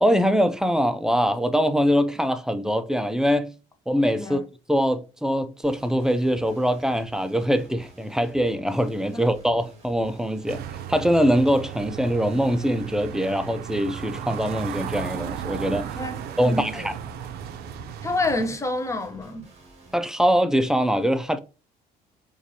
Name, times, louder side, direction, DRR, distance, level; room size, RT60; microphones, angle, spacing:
voice 1, 0.0-3.5 3.9-4.4 4.7-15.9 16.4-16.9 19.9-21.4, equal, 5° right, 0.3 m, -23 dB
sound 1, 5.6-20.0, right 2 dB, 40° right, 1.7 m, -50 dB
sound 2, 10.5-18.5, right 9 dB, 70° right, 0.5 m, -35 dB
voice 2, 16.0-16.9 18.0-19.4, left 2 dB, 15° left, 0.7 m, -28 dB
4.6 x 2.5 x 2.7 m
cardioid pair, 110°, 17 cm